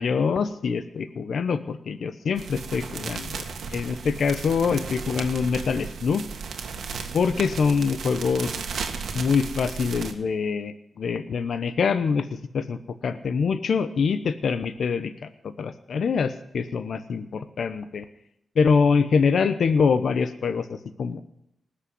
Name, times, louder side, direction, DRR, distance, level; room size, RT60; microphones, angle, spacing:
voice 1, 0.0-3.4 3.7-6.2 7.1-8.6 9.1-12.3 12.5-15.1 15.6-18.0 18.6-21.2, left 5 dB, 70° left, 11 dB, 0.9 m, -24 dB
sound 1, 2.4-10.1, right 5 dB, 80° right, 1.6 m, -35 dB
20.0 x 6.6 x 9.5 m, 0.78 s
cardioid pair, 100°, 0 cm